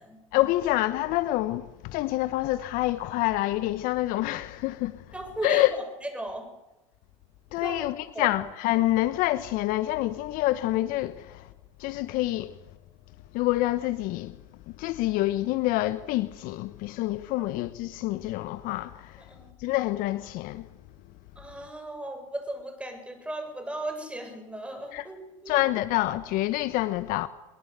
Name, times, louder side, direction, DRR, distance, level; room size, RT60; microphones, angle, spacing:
voice 1, 0.3-5.0 5.4-5.7 7.5-11.5 11.8-12.6 13.3-14.4 14.8-19.2 19.6-20.7 24.9-25.0 25.5-27.3, left 17 dB, 55° left, 1.2 m, -27 dB
voice 2, 5.1-6.5 7.6-7.9 8.1-8.3 17.4-17.5 19.3-19.5 21.4-25.6, right 1 dB, 5° right, 7.6 m, -36 dB
23.0 x 22.0 x 8.3 m
hypercardioid pair, 90°, 17 cm